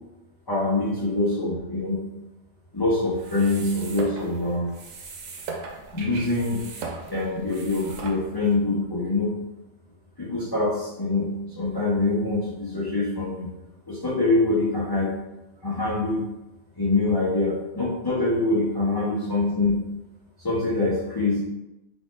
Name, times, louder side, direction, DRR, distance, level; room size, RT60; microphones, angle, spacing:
voice 1, 0.5-2.0 2.7-4.7 5.9-6.6 7.1-9.3 10.2-13.5 13.9-15.1 15.6-16.2 16.8-19.8 20.4-21.4, left 2 dB, 20° left, -7 dB, 0.8 m, -24 dB
sound 1, 3.1-8.6, right 4 dB, 80° right, 1.1 m, -38 dB
4.2 x 3.0 x 3.8 m, 0.98 s
omnidirectional pair, 1.4 m